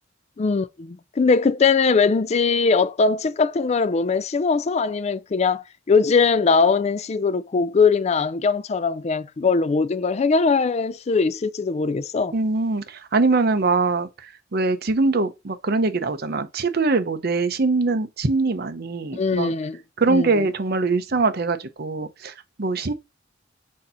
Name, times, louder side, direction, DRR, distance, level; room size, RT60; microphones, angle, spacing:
voice 1, 0.4-12.3 19.1-19.8 20.1-20.4, left 4 dB, 35° left, 0.4 m, -21 dB
voice 2, 12.3-19.5 20.0-22.9, right 3 dB, 50° right, 0.7 m, -23 dB
6.4 x 2.8 x 5.5 m
head